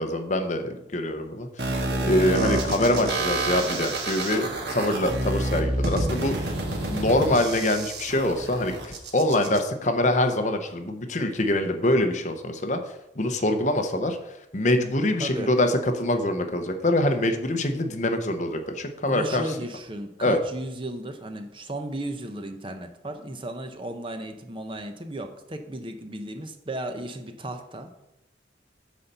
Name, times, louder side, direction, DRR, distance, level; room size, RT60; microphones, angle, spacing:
voice 1, 0.0-4.4 4.7-6.5 6.9-12.8 13.2-14.2 14.5-19.4 20.2-20.4, left 1 dB, 40° left, 6 dB, 0.9 m, -24 dB
sound 1, 1.6-9.6, right 2 dB, 70° right, 1.5 m, -28 dB
voice 2, 15.2-15.5 19.1-27.9, right 1 dB, 30° right, 6 dB, 0.7 m, -35 dB
9.5 x 4.3 x 6.7 m, 0.88 s
head